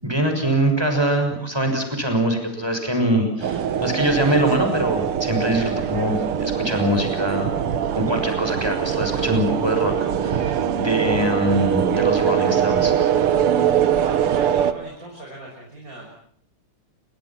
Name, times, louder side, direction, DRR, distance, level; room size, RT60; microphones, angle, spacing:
voice 1, 0.0-13.3, right 1 dB, 10° right, 5 dB, 6.3 m, -23 dB
sound 1, 3.4-14.7, right 9 dB, 90° right, 2.2 m, -22 dB
voice 2, 5.5-5.8 13.9-16.1, right 1 dB, 40° right, -1 dB, 7.0 m, -38 dB
29.5 x 25.0 x 6.0 m, 0.65 s
omnidirectional pair, 2.4 m